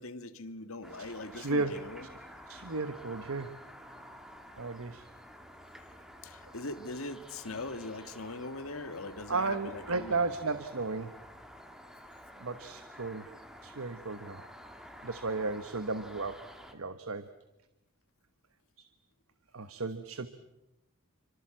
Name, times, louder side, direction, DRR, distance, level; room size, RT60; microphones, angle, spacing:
voice 1, 0.0-2.1 6.2-10.2, left 2 dB, 70° left, 1.8 m, -41 dB
sound 1, 0.8-16.7, equal, ahead, 2.3 m, -50 dB
voice 2, 1.3-1.7 2.5-3.5 4.6-5.1 9.3-11.1 12.4-13.3 13.6-14.5 15.0-16.4 16.7-17.3 18.8-18.9 19.5-20.3, right 3 dB, 70° right, 1.2 m, -34 dB
28.0 x 25.0 x 7.7 m
head